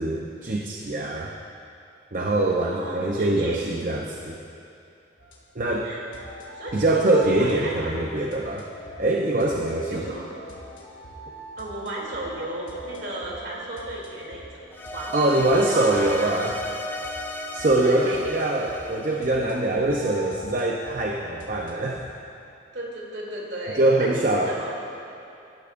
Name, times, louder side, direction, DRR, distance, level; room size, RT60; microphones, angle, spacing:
voice 1, 0.0-1.3 2.1-4.4 5.6-5.9 6.7-8.6 9.0-10.0 15.1-16.6 17.5-22.0 23.8-24.6, right 2 dB, 45° right, -1 dB, 0.7 m, -23 dB
voice 2, 2.6-3.7 5.8-6.0 6.5-8.1 9.9-10.3 11.6-14.6 14.9-16.3 17.8-18.4 22.7-24.8, right 1 dB, 60° right, -4 dB, 3.0 m, -34 dB
sound 1, 5.2-22.0, equal, 85° left, 2.2 m, -43 dB
sound 2, 14.7-20.0, left 1 dB, 10° left, 0.5 m, -35 dB
19.0 x 13.5 x 2.6 m, 2.6 s
head